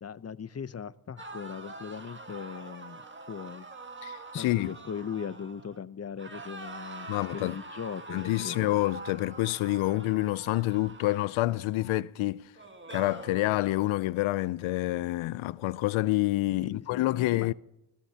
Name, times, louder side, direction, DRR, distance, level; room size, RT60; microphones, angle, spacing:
voice 1, 0.0-3.0 3.3-3.7 4.3-8.7 16.6-17.5, left 7 dB, 30° left, 0.7 m, -39 dB
sound 1, 1.2-5.8 6.2-12.0 12.5-14.0, right 3 dB, 25° right, 1.6 m, -45 dB
voice 2, 4.0-4.8 7.1-7.6 8.1-12.5 12.9-17.5, left 17 dB, 80° left, 0.6 m, -28 dB
25.5 x 17.5 x 2.8 m
cardioid pair, 70°, 47 cm